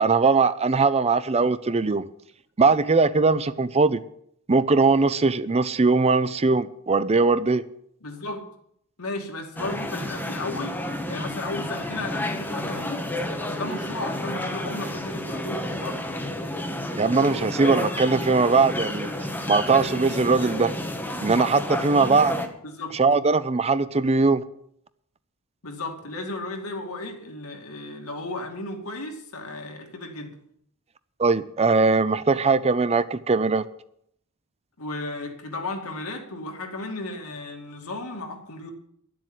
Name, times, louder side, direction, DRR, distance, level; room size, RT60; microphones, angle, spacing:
voice 1, 0.0-2.0 2.6-4.0 4.5-7.6 16.9-19.1 19.5-20.7 21.2-22.4 22.9-24.4 31.2-33.6, right 4 dB, 30° right, 0.6 m, -20 dB
voice 2, 8.0-8.4 9.0-10.8 11.1-13.1 13.4-16.0 22.6-23.0 25.6-30.3 34.8-38.7, left 2 dB, 80° left, 2.5 m, -34 dB
sound 1, 9.6-22.5, left 1 dB, 10° left, 1.4 m, -31 dB
11.5 x 7.7 x 9.2 m
head